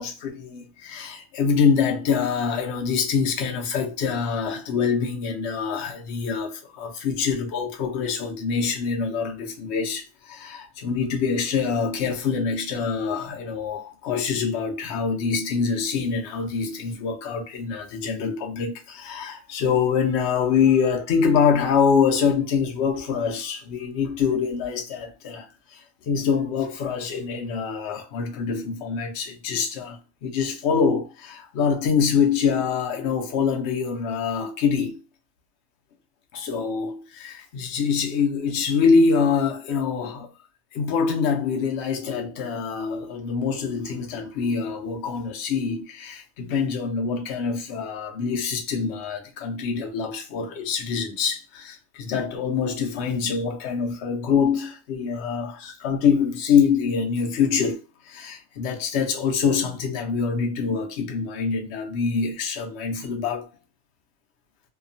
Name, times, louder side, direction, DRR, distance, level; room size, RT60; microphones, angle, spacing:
voice 1, 0.0-35.0 36.3-40.3 40.7-63.5, left 6 dB, 60° left, 0.8 m, -25 dB
2.8 x 2.2 x 2.6 m
omnidirectional pair, 1.5 m